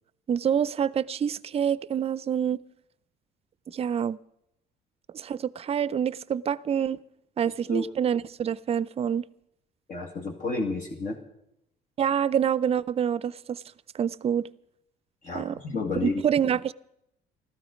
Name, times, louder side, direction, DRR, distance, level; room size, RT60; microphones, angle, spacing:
voice 1, 0.3-2.6 3.7-4.2 5.1-7.0 7.4-9.3 12.0-13.6 13.9-14.4 15.3-15.6 16.0-16.7, right 8 dB, 35° right, 0.5 m, -26 dB
voice 2, 9.9-11.2 15.2-16.2, left 2 dB, 50° left, 2.0 m, -30 dB
15.0 x 13.5 x 5.1 m
cardioid pair, 110°, 17 cm